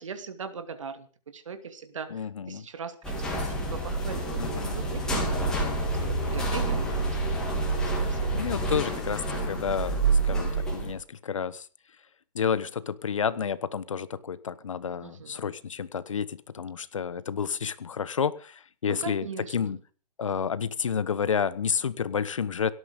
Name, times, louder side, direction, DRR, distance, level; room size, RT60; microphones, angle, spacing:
voice 1, 0.0-8.4 15.0-15.4 18.8-19.8, right 6 dB, 50° right, 11 dB, 2.6 m, -40 dB
voice 2, 2.1-2.7 4.4-4.8 8.3-11.7 12.3-19.3 19.5-19.8 20.2-22.7, left 7 dB, 50° left, 16 dB, 1.3 m, -30 dB
sound 1, 3.0-10.9, right 2 dB, 5° left, 3.2 m, -28 dB
18.0 x 13.0 x 5.3 m, 0.39 s
hypercardioid pair, 175°, 21 cm